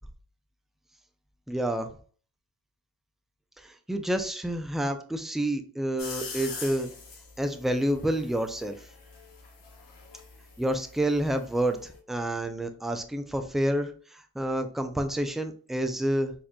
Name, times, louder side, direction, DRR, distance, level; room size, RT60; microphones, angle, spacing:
voice 1, 1.5-1.9 3.9-6.9 7.4-8.8 10.6-13.9 14.4-16.3, right 1 dB, ahead, 6 dB, 0.5 m, -28 dB
sound 1, 6.0-12.0, left 4 dB, 75° left, 1.0 m, -44 dB
4.2 x 2.9 x 2.3 m, 0.42 s
supercardioid pair, 40°, 41 cm